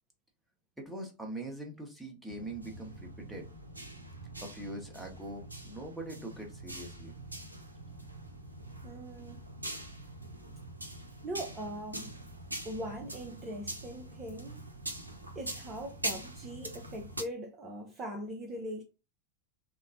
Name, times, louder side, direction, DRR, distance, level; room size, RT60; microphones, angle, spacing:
voice 1, 0.8-3.5 4.4-7.2, right 1 dB, 5° right, 0.9 m, -42 dB
sound 1, 2.3-17.2, right 1 dB, 80° right, 0.5 m, -43 dB
voice 2, 8.8-9.4 11.2-12.1 12.6-14.6 15.3-18.8, equal, 25° right, 0.6 m, -41 dB
3.7 x 2.1 x 2.6 m
figure-of-eight pair, 90°, 0 cm